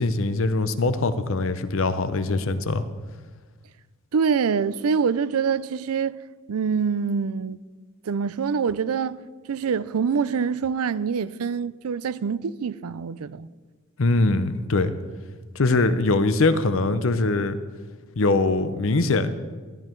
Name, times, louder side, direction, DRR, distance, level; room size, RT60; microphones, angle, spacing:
voice 1, 0.0-2.8 14.0-14.9 15.6-17.6 18.2-19.3, left 3 dB, 65° left, 0.7 m, -22 dB
voice 2, 4.1-6.2 6.5-7.6 8.1-9.2 9.5-13.5, right 6 dB, 80° right, 0.4 m, -25 dB
14.0 x 11.0 x 4.5 m
head